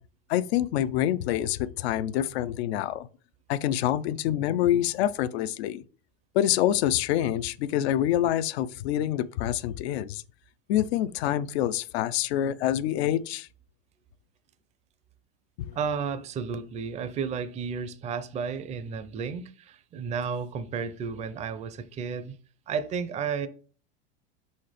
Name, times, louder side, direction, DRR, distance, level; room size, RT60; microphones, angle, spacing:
voice 1, 0.3-3.1 3.5-5.8 6.3-10.2 10.7-13.5 15.7-15.8, left 12 dB, 75° left, 0.6 m, -26 dB
voice 2, 15.7-22.4 22.7-23.5, right 6 dB, 20° right, 0.5 m, -32 dB
5.6 x 4.3 x 5.0 m
supercardioid pair, 125°, 32 cm